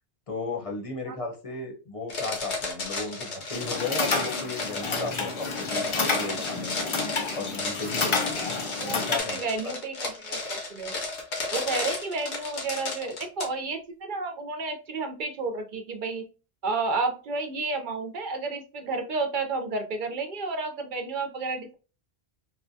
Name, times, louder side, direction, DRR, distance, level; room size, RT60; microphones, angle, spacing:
voice 1, 0.3-6.8 7.3-8.5 8.8-9.8, left 3 dB, 35° left, 2 dB, 0.7 m, -35 dB
sound 1, 2.1-13.4, left 3 dB, 90° left, 1.3 m, -33 dB
sound 2, 3.5-9.2, left 4 dB, 50° left, 0.3 m, -30 dB
voice 2, 8.7-9.0 9.3-11.0 11.5-16.3 16.6-21.7, right 3 dB, 55° right, 6 dB, 0.6 m, -31 dB
4.2 x 2.2 x 2.6 m, 0.34 s
omnidirectional pair, 1.1 m